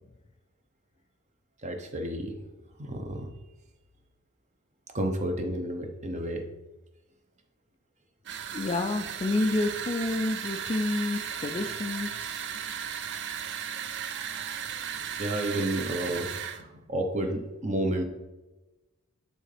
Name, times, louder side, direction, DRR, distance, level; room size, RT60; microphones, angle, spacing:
voice 1, 1.6-2.4 2.8-3.3 4.9-6.4 15.2-16.3 16.6-18.0, right 1 dB, 35° right, 4 dB, 0.8 m, -31 dB
sound 1, 8.3-16.6, right 8 dB, 55° right, 0.5 m, -36 dB
voice 2, 8.5-12.5, left 2 dB, 30° left, 8 dB, 0.3 m, -29 dB
8.9 x 3.8 x 3.3 m, 1.1 s
head